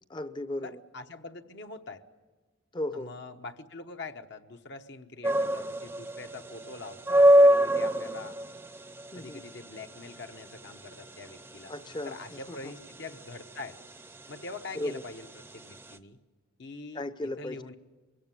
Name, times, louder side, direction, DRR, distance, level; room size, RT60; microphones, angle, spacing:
voice 1, 0.1-0.8 2.7-3.1 9.1-9.4 11.7-12.7 14.7-15.0 16.9-17.7, left 1 dB, 20° left, 12 dB, 0.7 m, -36 dB
voice 2, 0.6-2.0 2.9-8.4 9.1-11.7 12.1-13.8 14.3-16.2 16.6-17.0 17.4-17.7, left 3 dB, 55° left, 6 dB, 1.1 m, -44 dB
sound 1, 5.2-16.0, equal, 10° right, 0.7 m, -26 dB
23.0 x 16.5 x 9.8 m, 1.3 s
head